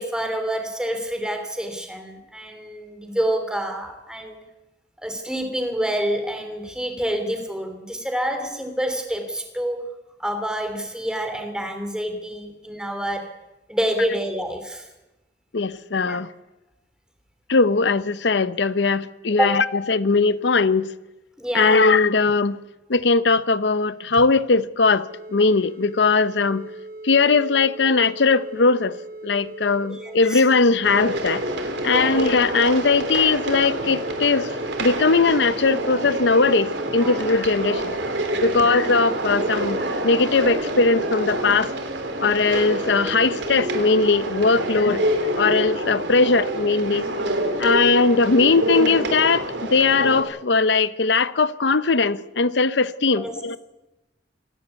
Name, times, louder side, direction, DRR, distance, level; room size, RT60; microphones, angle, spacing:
voice 1, 0.0-4.4 5.0-9.9 10.2-13.3 13.7-14.9 16.0-16.2 19.4-19.6 21.4-21.8 29.9-30.4 31.8-32.1 37.0-37.2 38.4-38.6 44.5-44.6 53.1-53.3, equal, 5° right, 3.0 m, -27 dB
voice 2, 15.5-16.3 17.5-20.9 21.5-22.6 22.9-26.7 27.0-29.0 29.2-31.4 31.8-34.5 34.8-37.9 38.4-41.7 42.2-45.0 45.4-47.1 47.6-53.6, left 4 dB, 75° left, 0.8 m, -19 dB
sound 1, 25.1-39.9, right 2 dB, 60° right, 3.9 m, -39 dB
sound 2, 30.8-50.2, right 1 dB, 85° right, 3.2 m, -27 dB
27.0 x 12.0 x 8.3 m
head